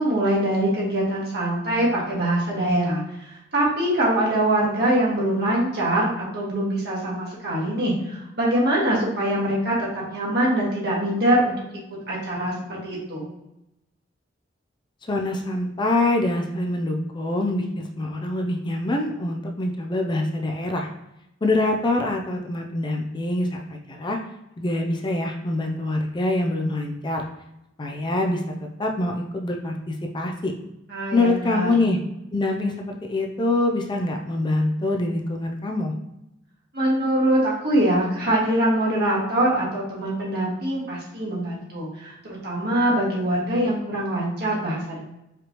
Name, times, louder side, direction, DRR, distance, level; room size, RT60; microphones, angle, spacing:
voice 1, 0.0-3.0 3.3-11.5 12.1-13.3 30.9-31.7 36.7-45.0, right 1 dB, 60° right, -5 dB, 1.6 m, -23 dB
voice 2, 15.1-20.9 21.4-24.2 24.6-27.3 27.8-30.5 31.1-32.0 32.3-35.9, left 2 dB, 25° left, 2 dB, 0.4 m, -25 dB
4.9 x 3.1 x 2.9 m, 0.87 s
head